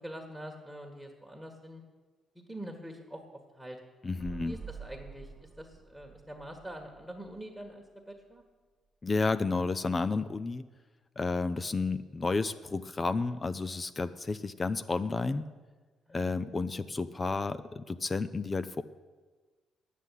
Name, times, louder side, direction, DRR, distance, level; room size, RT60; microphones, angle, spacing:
voice 1, 0.0-1.8 2.4-3.8 4.3-8.4 16.1-16.4, right 1 dB, ahead, 1 dB, 1.7 m, -45 dB
voice 2, 4.0-4.6 9.0-10.6 11.2-15.5 16.1-18.8, left 3 dB, 30° left, 13 dB, 0.5 m, -31 dB
sound 1, 4.2-7.9 8.2-8.3, right 5 dB, 30° right, 1.2 m, -48 dB
9.7 x 8.3 x 9.2 m, 1.3 s
cardioid pair, 90°, 0 cm